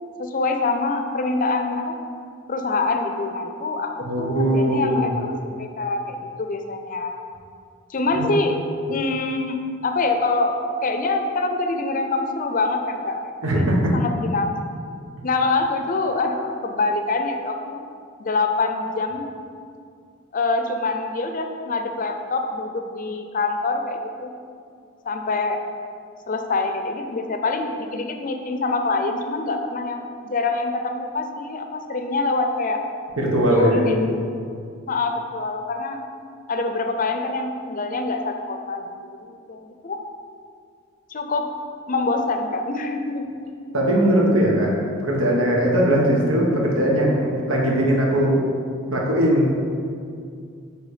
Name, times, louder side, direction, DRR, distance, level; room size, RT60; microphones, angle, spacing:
voice 1, 0.0-1.9 2.5-7.2 7.9-8.6 8.9-10.5 10.8-13.7 13.9-14.6 15.2-17.8 18.2-19.3 20.3-24.3 25.0-25.6 26.3-30.0 30.3-32.8 33.4-34.3 34.9-36.0 36.5-38.9 39.2-40.0 41.1-41.5 41.9-43.2, left 3 dB, 40° left, 5 dB, 0.5 m, -25 dB
voice 2, 4.0-5.1 8.1-8.3 13.4-13.9 33.2-34.1 43.7-44.7 45.0-48.4 48.9-49.6, equal, 85° right, -2 dB, 1.4 m, -20 dB
9.3 x 3.4 x 5.0 m, 2.3 s
head